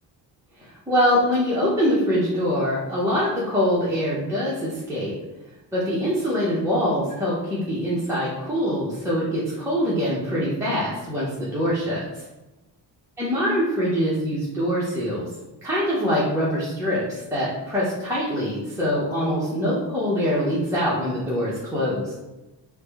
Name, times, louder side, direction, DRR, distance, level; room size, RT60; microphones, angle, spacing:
voice 1, 0.6-5.2 5.7-12.2 13.2-15.3 15.6-22.1, equal, 5° right, -9 dB, 0.6 m, -24 dB
4.7 x 2.1 x 3.4 m, 1.0 s
wide cardioid pair, 160°, 42 cm